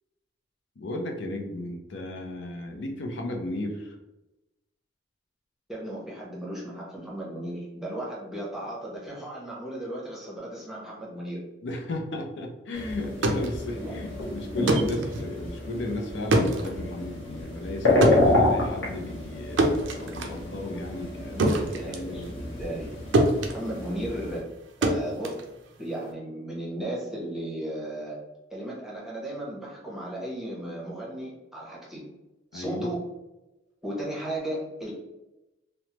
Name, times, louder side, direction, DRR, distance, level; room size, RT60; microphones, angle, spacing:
voice 1, 0.8-3.9 11.6-22.4 32.5-32.9, left 1 dB, 65° left, 2 dB, 0.5 m, -34 dB
voice 2, 5.7-11.4 13.7-14.0 21.1-22.9 23.5-24.5 24.8-25.5 25.8-28.2 28.5-32.0 32.5-33.1 33.8-34.9, right 1 dB, ahead, -5 dB, 0.8 m, -35 dB
sound 1, 12.7-24.4, left 2 dB, 80° left, 1.2 m, -29 dB
sound 2, 13.0-22.9 23.1-26.1, right 1 dB, 70° right, 0.4 m, -27 dB
3.1 x 2.0 x 2.8 m, 0.98 s
head